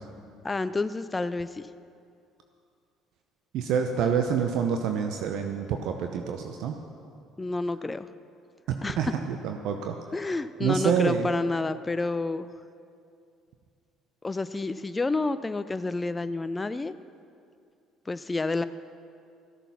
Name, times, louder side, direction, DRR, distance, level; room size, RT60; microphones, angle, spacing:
voice 1, 0.4-1.7 7.4-8.1 8.8-9.0 10.1-12.5 14.2-16.9 18.1-18.6, left 3 dB, 20° left, 13 dB, 0.4 m, -29 dB
voice 2, 3.5-6.8 8.7-10.0 10.6-11.3, right 7 dB, 65° right, 4 dB, 0.7 m, -27 dB
13.5 x 9.0 x 5.8 m, 2.4 s
hypercardioid pair, 60°, 0 cm